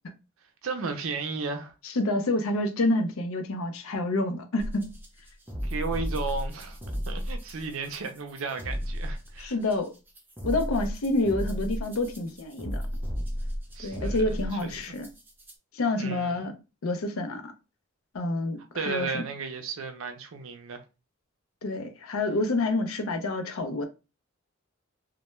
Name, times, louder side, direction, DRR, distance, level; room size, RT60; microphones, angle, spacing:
voice 1, 0.6-1.7 5.6-6.8 7.1-9.6 13.7-14.8 15.9-16.5 18.7-20.8, right 4 dB, 70° right, 0.5 m, -34 dB
voice 2, 2.0-4.8 9.4-9.9 10.4-12.8 13.8-15.1 15.7-16.6 16.8-17.5 18.1-19.2 21.6-23.8, left 2 dB, 75° left, 0.5 m, -28 dB
sound 1, 4.6-15.5, equal, 10° right, 0.3 m, -34 dB
2.2 x 2.1 x 3.0 m
head